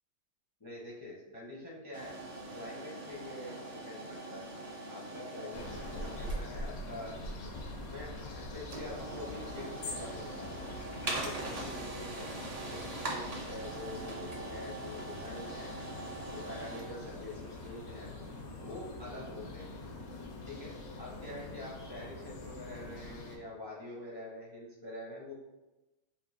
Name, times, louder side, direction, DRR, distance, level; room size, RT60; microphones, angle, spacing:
voice 1, 0.6-2.1 2.5-4.5 4.9-7.2 7.6-10.7 11.0-12.3 12.7-12.8 13.1-15.7 16.3-18.1 18.6-19.7 20.5-25.3, left 1 dB, 30° left, -5 dB, 0.4 m, -46 dB
sound 1, 1.9-18.8, right 2 dB, 65° right, 0.4 m, -43 dB
sound 2, 5.5-23.4, left 2 dB, 80° left, 1.2 m, -44 dB
3.7 x 2.6 x 3.9 m, 1.0 s
omnidirectional pair, 1.5 m